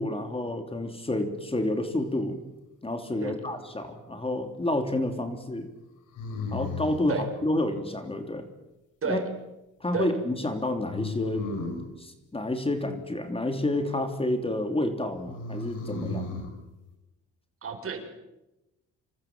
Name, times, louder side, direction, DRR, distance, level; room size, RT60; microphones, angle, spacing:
voice 1, 0.0-2.4 2.8-5.7 6.5-8.5 9.0-9.2 9.8-11.5 12.0-16.4, left 1 dB, 20° left, 6 dB, 3.2 m, -29 dB
sound 1, 3.4-4.1 6.1-7.1 10.9-11.9 15.3-16.5, left 3 dB, 90° left, 5.9 m, -34 dB
voice 2, 17.6-18.0, right 5 dB, 45° right, 6 dB, 6.1 m, -30 dB
27.5 x 24.0 x 7.6 m, 0.98 s
cardioid pair, 90°, 30 cm